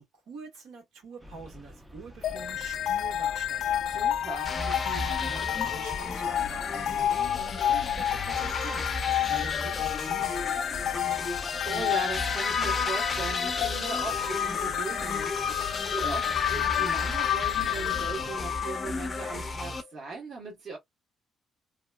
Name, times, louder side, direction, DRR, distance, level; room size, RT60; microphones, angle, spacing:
voice 1, 0.0-3.8 4.3-8.9 9.1-11.2, right 4 dB, 85° right, 1.5 m, -46 dB
sound 1, 1.2-18.6, equal, 15° right, 0.6 m, -47 dB
sound 2, 2.2-19.4, left 11 dB, 75° left, 0.3 m, -30 dB
voice 2, 3.9-4.5 11.6-20.8, right 4 dB, 55° right, 1.2 m, -38 dB
sound 3, 4.4-19.8, left 3 dB, 35° left, 0.6 m, -33 dB
2.9 x 2.1 x 2.3 m
cardioid pair, 90°, 0 cm